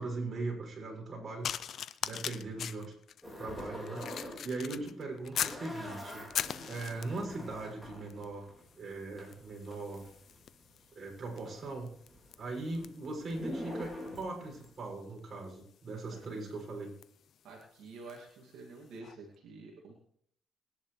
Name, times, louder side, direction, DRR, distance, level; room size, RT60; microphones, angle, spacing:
voice 1, 0.0-1.5 2.0-2.9 3.4-6.2 6.6-8.5 8.8-10.1 10.9-11.9 12.4-16.9, right 2 dB, 45° right, 0 dB, 6.7 m, -40 dB
sound 1, 1.4-5.7 6.1-7.3 8.1-8.3 8.6-18.3 19.0-19.2, left 9 dB, 65° left, 0.6 m, -42 dB
sound 2, 3.2-4.4 4.7-10.8 11.1-14.7, equal, ahead, 4.8 m, -45 dB
voice 2, 17.4-19.9, right 3 dB, 85° right, -2 dB, 2.5 m, -49 dB
21.5 x 10.5 x 3.3 m, 0.67 s
cardioid pair, 90°, 0 cm